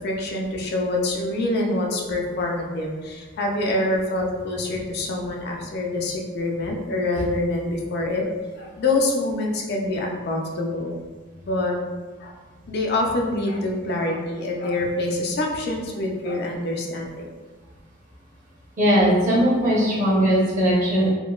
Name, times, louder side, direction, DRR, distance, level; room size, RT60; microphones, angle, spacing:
voice 1, 0.0-8.2 8.6-11.0 11.4-11.8 12.2-12.3 12.7-17.3, left 2 dB, 55° left, 0 dB, 0.4 m, -25 dB
voice 2, 18.8-21.1, equal, 40° right, -7 dB, 1.0 m, -19 dB
3.6 x 2.2 x 2.4 m, 1.3 s
head